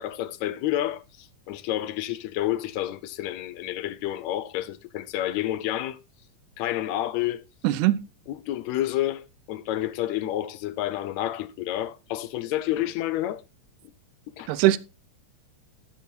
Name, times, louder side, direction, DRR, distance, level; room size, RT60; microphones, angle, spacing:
voice 1, 0.0-6.0 6.6-7.5 8.3-13.4 14.4-14.6, left 13 dB, 80° left, 1.6 m, -29 dB
voice 2, 7.6-8.0 14.5-14.8, right 15 dB, 80° right, 1.8 m, -20 dB
15.5 x 6.2 x 2.7 m
omnidirectional pair, 3.8 m